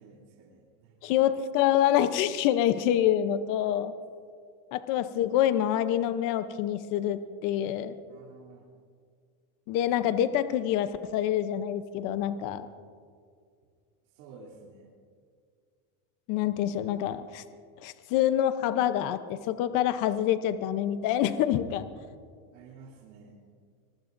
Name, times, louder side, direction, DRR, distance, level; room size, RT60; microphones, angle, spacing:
voice 1, 0.0-1.2 8.1-8.6 14.1-14.9 22.5-23.3, right 4 dB, 80° right, -5 dB, 3.0 m, -51 dB
voice 2, 1.0-3.9 4.7-8.0 9.7-12.7 16.3-17.4 17.8-21.9, left 11 dB, 45° left, 11 dB, 0.8 m, -26 dB
25.0 x 22.0 x 2.6 m, 2.1 s
cardioid pair, 160°, 43 cm